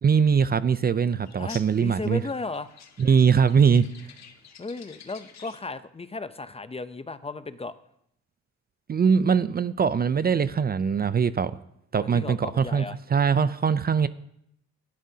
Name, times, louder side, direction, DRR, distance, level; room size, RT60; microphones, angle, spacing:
voice 1, 0.0-2.2 3.0-3.9 8.9-11.5 11.9-12.9 13.1-14.1, right 6 dB, 30° right, 14 dB, 0.5 m, -21 dB
sound 1, 1.2-5.7, left 7 dB, 60° left, 1.7 m, -49 dB
voice 2, 1.4-2.7 4.6-7.7 12.0-13.0, left 3 dB, 20° left, 13 dB, 0.6 m, -35 dB
17.5 x 11.5 x 2.8 m, 0.76 s
cardioid pair, 90°, 30 cm